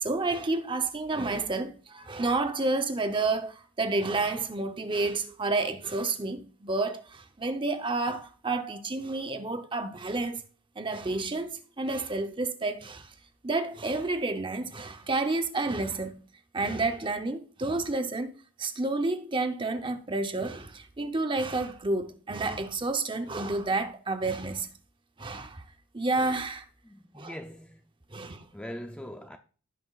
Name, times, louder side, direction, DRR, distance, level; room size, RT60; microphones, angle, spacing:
voice 1, 0.0-10.4 10.8-13.1 13.4-16.2 16.5-18.3 18.6-24.7 25.2-25.6 25.9-26.6 27.2-27.3 28.1-28.5, right 3 dB, 25° right, 0.7 m, -30 dB
voice 2, 26.8-27.8 28.5-29.4, equal, 5° left, 0.4 m, -41 dB
16.0 x 6.0 x 2.4 m
head